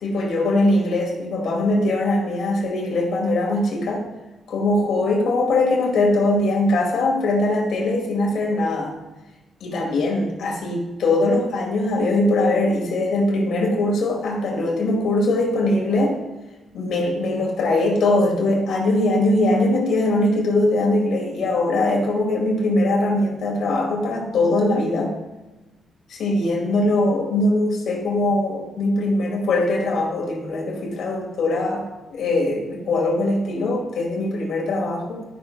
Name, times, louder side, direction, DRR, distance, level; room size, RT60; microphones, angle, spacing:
voice 1, 0.0-4.1 4.5-8.9 9.6-16.2 16.7-25.2 26.1-31.8 32.1-35.2, left 2 dB, 70° left, -1 dB, 2.2 m, -21 dB
13.0 x 6.3 x 2.3 m, 1.1 s
cardioid pair, 120°, 0 cm